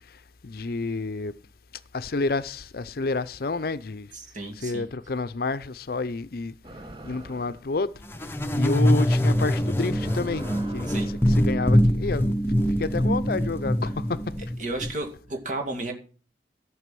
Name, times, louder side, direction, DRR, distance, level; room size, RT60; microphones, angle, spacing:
voice 1, 0.4-1.3 1.9-4.1 4.6-6.5 7.0-7.9 8.5-10.5 10.7-10.9 11.3-12.4 12.8-14.2, left 3 dB, 55° left, 0.6 m, -29 dB
voice 2, 4.1-4.9 10.9-11.1 14.6-15.9, right 2 dB, 45° right, 2.5 m, -33 dB
sound 1, 6.6-7.7 8.7-8.9 9.7-11.3, right 1 dB, 30° right, 1.1 m, -44 dB
sound 2, 8.1-14.9, equal, 15° left, 0.8 m, -23 dB
12.5 x 6.1 x 7.6 m
head